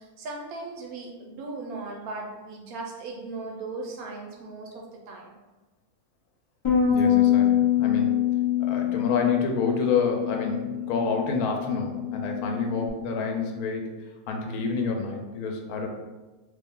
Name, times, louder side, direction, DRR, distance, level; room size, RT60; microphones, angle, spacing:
voice 1, 0.0-5.3, right 3 dB, 85° right, 0 dB, 1.1 m, -38 dB
Bass guitar, 6.6-12.9, left 10 dB, 40° left, 0.4 m, -25 dB
voice 2, 6.9-8.2 8.6-13.9 14.3-15.9, left 4 dB, 90° left, 2 dB, 1.1 m, -28 dB
3.5 x 2.5 x 3.6 m, 1.2 s
omnidirectional pair, 1.5 m